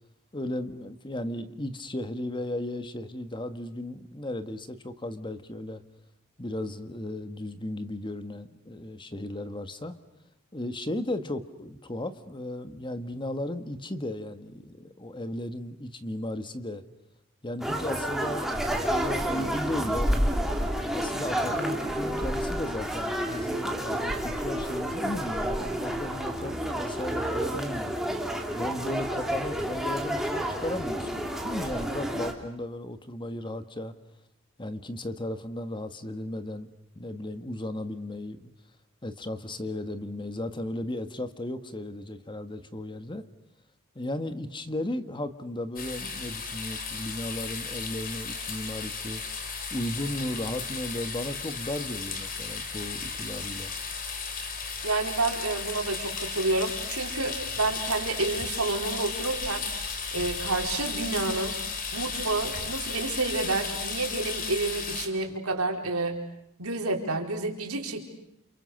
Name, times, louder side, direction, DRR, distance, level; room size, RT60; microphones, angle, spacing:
voice 1, 0.3-5.8 6.4-10.0 10.5-16.8 17.4-20.2 20.9-27.9 28.5-33.9 34.6-36.7 36.9-38.5 39.0-43.3 43.9-49.2 49.7-53.7, left 1 dB, 20° left, 10 dB, 1.5 m, -35 dB
sound 1, 17.6-32.3, equal, ahead, 2.9 m, -30 dB
sound 2, 45.8-65.1, left 5 dB, 40° left, 3.3 m, -35 dB
voice 2, 54.8-59.7 60.1-61.6 61.9-66.2 66.6-68.0, right 3 dB, 80° right, 2 dB, 4.6 m, -29 dB
30.0 x 28.5 x 6.6 m, 0.79 s
head